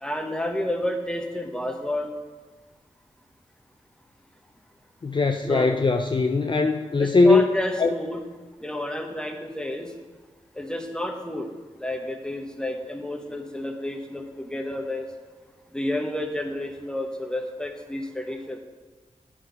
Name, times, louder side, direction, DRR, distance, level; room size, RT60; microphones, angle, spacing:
voice 1, 0.0-2.1 5.4-5.7 7.0-8.2 8.6-9.9 10.5-11.5 11.8-15.1 15.7-18.6, left 1 dB, 5° left, 4 dB, 1.1 m, -30 dB
voice 2, 5.0-7.4 7.8-7.9, left 3 dB, 35° left, 4 dB, 0.5 m, -20 dB
9.4 x 4.2 x 5.2 m, 1.4 s
cardioid pair, 45°, 13 cm